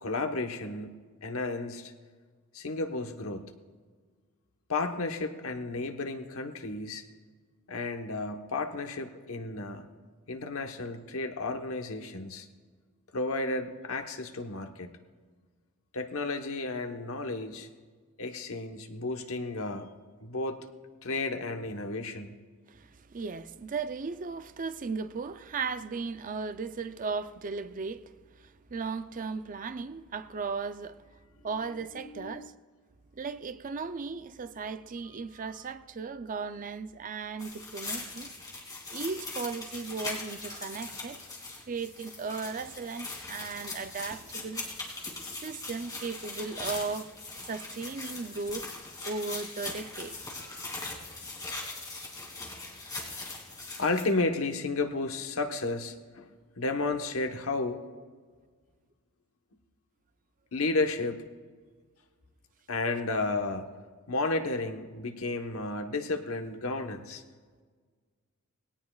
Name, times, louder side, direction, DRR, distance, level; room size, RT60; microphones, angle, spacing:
voice 1, 0.0-1.9 2.5-3.5 4.7-7.1 7.7-9.9 10.3-12.5 13.1-15.0 15.9-17.7 18.2-19.9 20.2-20.6 21.0-22.3 31.9-32.5 50.4-51.0 53.8-57.8 60.5-61.2 62.7-63.7 64.1-67.2, left 3 dB, 70° left, 1.2 m, -33 dB
voice 2, 22.7-28.0 28.4-31.0 31.4-32.5 33.1-38.3 38.9-41.2 41.7-44.6 45.4-47.1 47.5-48.7 49.0-50.2, right 4 dB, 40° right, 0.5 m, -36 dB
sound 1, 37.4-54.0, left 3 dB, 15° left, 2.6 m, -40 dB
20.0 x 17.5 x 2.4 m
head